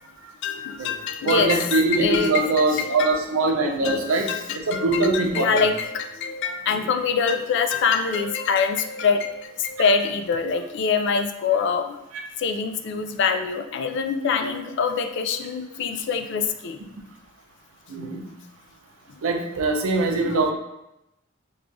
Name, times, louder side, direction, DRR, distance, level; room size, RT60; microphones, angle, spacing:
voice 1, 0.4-3.2 3.8-12.0 12.4-16.8 20.2-20.4, left 5 dB, 55° left, 7 dB, 0.3 m, -25 dB
voice 2, 1.2-4.3 4.7-5.6 6.7-6.8 17.9-18.2 19.2-20.5, right 3 dB, 80° right, 3 dB, 0.6 m, -22 dB
4.6 x 2.4 x 2.6 m, 0.90 s
head